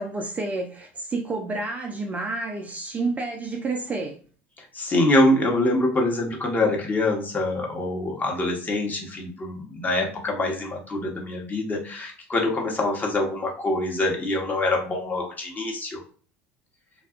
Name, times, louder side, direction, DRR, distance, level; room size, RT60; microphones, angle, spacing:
voice 1, 0.0-4.2, right 3 dB, 20° right, 3 dB, 0.4 m, -29 dB
voice 2, 4.6-16.0, left 2 dB, 25° left, 0 dB, 0.9 m, -25 dB
2.6 x 2.2 x 2.3 m, 0.40 s
hypercardioid pair, 75°, 7 cm